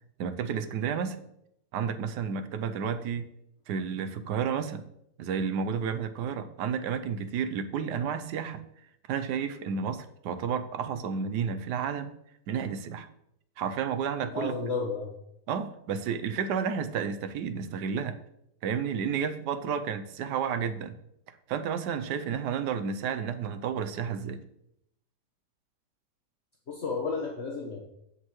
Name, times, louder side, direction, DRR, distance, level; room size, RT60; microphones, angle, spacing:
voice 1, 0.2-1.2 1.7-3.3 3.7-4.9 5.2-8.6 9.1-12.1 12.5-13.1 13.6-14.5 15.5-18.2 18.6-21.0 21.5-24.4, right 7 dB, 80° right, 10 dB, 1.3 m, -31 dB
voice 2, 14.3-15.1 26.7-27.8, left 4 dB, 45° left, -1 dB, 1.3 m, -32 dB
16.0 x 5.5 x 3.1 m, 0.79 s
omnidirectional pair, 1.8 m